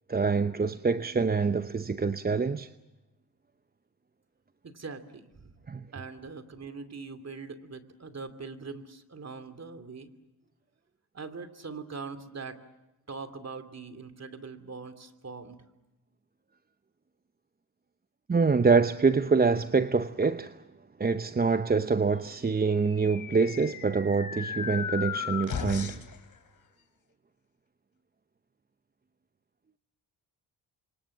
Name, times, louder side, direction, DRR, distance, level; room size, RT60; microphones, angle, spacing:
voice 1, 0.1-2.7 5.7-5.8 18.3-20.6 21.0-26.0, right 4 dB, 25° right, 0.8 m, -25 dB
voice 2, 4.6-5.6 5.9-10.1 11.1-12.6 13.1-15.7, right 4 dB, 40° right, 2.9 m, -42 dB
sound 1, 22.6-26.2, left 7 dB, 55° left, 3.2 m, -36 dB
28.5 x 24.5 x 7.4 m
supercardioid pair, 55°, 40 cm